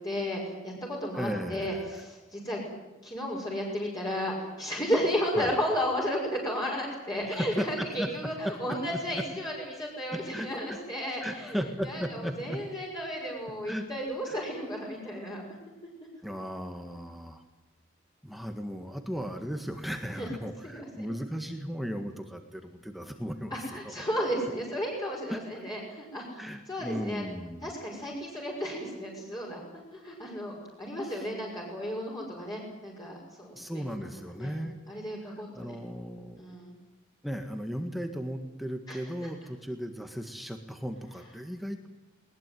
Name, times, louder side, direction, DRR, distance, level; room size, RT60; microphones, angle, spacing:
voice 1, 0.0-2.6 3.0-11.6 11.8-15.4 20.2-20.3 20.6-21.1 23.5-26.4 26.7-27.2 27.6-29.6 30.0-34.1 34.4-34.5 34.9-35.8 36.4-36.7 38.9-39.3, equal, 20° left, -3 dB, 5.9 m, -33 dB
voice 2, 1.1-2.1 5.3-5.6 7.2-8.6 8.9-9.2 10.1-10.8 11.2-12.6 13.7-13.8 14.3-14.4 16.2-17.4 18.2-23.9 25.3-25.4 26.4-27.8 31.0-31.3 33.5-34.8 35.2-36.4 37.2-41.9, equal, ahead, 5 dB, 1.7 m, -36 dB
21.0 x 21.0 x 9.3 m, 1.1 s
head